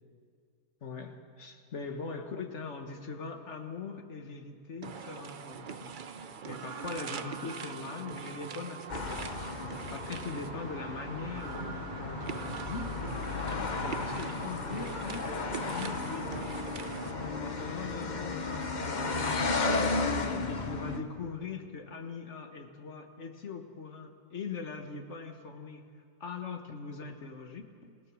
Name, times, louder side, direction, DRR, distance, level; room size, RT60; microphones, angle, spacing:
voice 1, 0.8-9.4 9.9-12.9 13.6-16.4 17.3-20.0 20.5-25.9 26.2-28.0, left 4 dB, 50° left, 5 dB, 1.7 m, -41 dB
sound 1, 4.8-17.4, right 6 dB, 45° right, 0.7 m, -42 dB
sound 2, 8.9-21.0, left 3 dB, 35° left, 1.0 m, -34 dB
28.0 x 17.0 x 6.3 m, 2.2 s
omnidirectional pair, 1.6 m